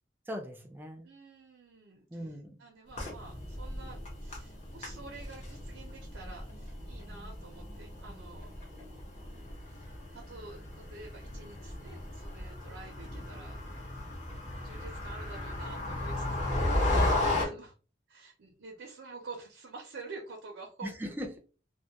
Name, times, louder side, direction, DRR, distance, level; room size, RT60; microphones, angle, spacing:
voice 1, 0.3-1.1 2.1-2.6 16.9-17.2 20.8-21.4, equal, 10° right, 3 dB, 0.4 m, -39 dB
voice 2, 1.0-2.1 2.6-8.5 9.7-14.1 14.6-17.7 18.1-20.9, right 3 dB, 90° right, 0 dB, 0.5 m, -48 dB
sound 1, 2.9-17.5, left 1 dB, 35° left, 0.8 m, -35 dB
2.2 x 2.1 x 2.8 m, 0.36 s
head